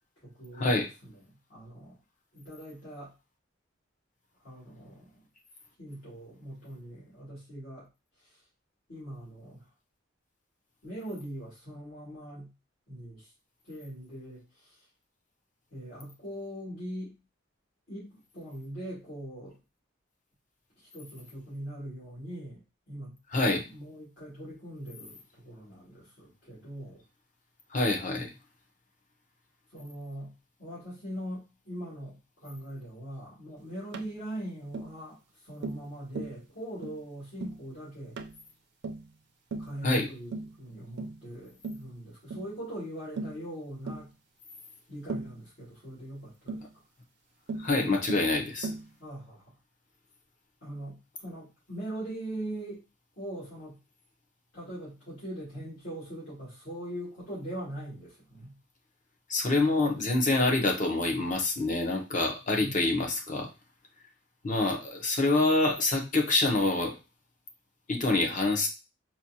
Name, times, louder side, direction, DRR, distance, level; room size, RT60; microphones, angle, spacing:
voice 1, 0.2-1.2 1.5-2.0 2.3-3.1 4.4-5.2 5.8-7.9 8.2-8.4 8.9-9.6 10.8-12.5 12.9-13.3 13.6-14.8 15.7-17.2 17.9-19.5 20.8-22.6 22.9-23.1 23.7-27.0 29.7-30.3 30.6-35.2 35.4-38.2 39.6-44.1 44.9-46.7 49.0-49.5 50.6-52.8 53.2-53.8 54.5-58.5 62.6-62.8, right 1 dB, 60° left, -9 dB, 2.1 m, -41 dB
voice 2, 23.3-23.6 27.7-28.3 39.8-40.1 47.6-48.7 59.3-63.5 64.4-67.0 67.9-68.7, left 2 dB, 40° left, 2 dB, 0.8 m, -26 dB
Tap, 33.9-34.1 34.7-34.9 35.6-35.9 36.2-36.4 36.8-37.0 37.4-37.6 38.2-38.4 38.8-39.1 39.5-39.8 40.3-40.6 41.0-41.2 41.6-41.9 42.3-42.5 43.2-43.4 43.9-44.1 45.1-45.4 46.5-46.7 47.5-47.7 48.1-48.3 48.6-48.9, right 3 dB, 60° right, 0.4 m, -37 dB
4.2 x 2.2 x 2.8 m, 0.28 s
head